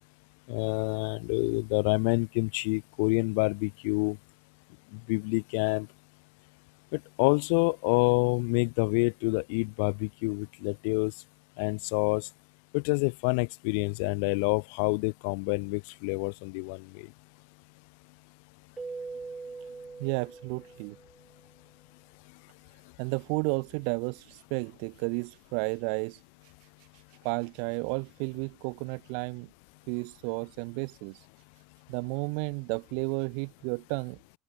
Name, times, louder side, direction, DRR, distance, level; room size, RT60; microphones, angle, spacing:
voice 1, 0.5-4.2 4.9-5.9 6.9-11.1 11.6-12.3 12.7-16.8, left 35 dB, 80° left, 1.7 m, -27 dB
Keyboard (musical), 18.8-21.3, right 4 dB, 15° right, 3.4 m, -42 dB
voice 2, 20.0-21.0 23.0-26.5 26.8-29.5 29.9-31.3 31.9-34.2, right 40 dB or more, 75° right, 1.0 m, -33 dB
cardioid pair, 165°, 0 cm